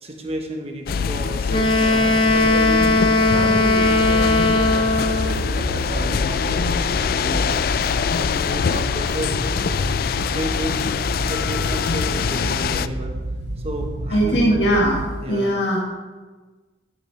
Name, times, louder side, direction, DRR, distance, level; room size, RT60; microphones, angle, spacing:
voice 1, 0.0-2.8 3.3-7.8 8.2-9.3 9.7-10.0 10.3-10.8 11.3-13.2 13.6-14.6 15.2-15.6, right 1 dB, 35° right, 3 dB, 1.3 m, -32 dB
sound 1, 0.9-12.9, left 6 dB, 55° left, 0.3 m, -24 dB
Wind instrument woodwind instrument, 1.5-5.4, left 2 dB, 30° left, 0.7 m, -18 dB
sound 2, 2.0-15.1, right 1 dB, 75° right, 0.8 m, -31 dB
voice 2, 14.1-15.0 15.3-15.8, equal, 80° left, -4 dB, 2.0 m, -19 dB
11.5 x 10.0 x 3.4 m, 1.3 s
head